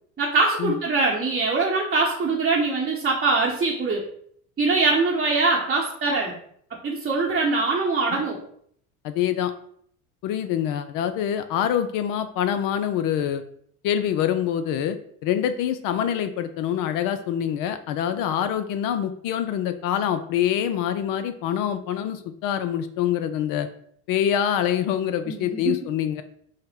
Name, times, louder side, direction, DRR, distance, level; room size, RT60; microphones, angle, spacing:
voice 1, 0.2-4.0 4.6-6.4 6.8-8.4 25.3-25.8, right 3 dB, 25° right, -3 dB, 0.8 m, -23 dB
voice 2, 9.0-9.5 10.2-13.4 13.8-23.7 24.1-26.2, left 10 dB, 50° left, 10 dB, 0.5 m, -25 dB
5.4 x 2.1 x 3.6 m, 0.64 s
hypercardioid pair, 75°, 43 cm